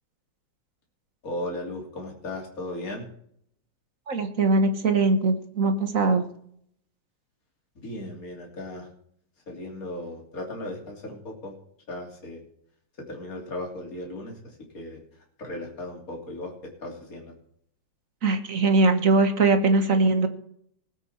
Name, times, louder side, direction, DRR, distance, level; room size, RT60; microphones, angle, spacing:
voice 1, 1.2-3.1 7.8-8.9 9.5-11.5 11.9-12.4 13.1-15.0 15.4-17.3, left 1 dB, 45° left, 0 dB, 3.4 m, -36 dB
voice 2, 4.1-6.2 18.2-20.3, right 3 dB, 45° right, 8 dB, 1.4 m, -21 dB
20.0 x 8.2 x 4.3 m, 0.67 s
omnidirectional pair, 2.2 m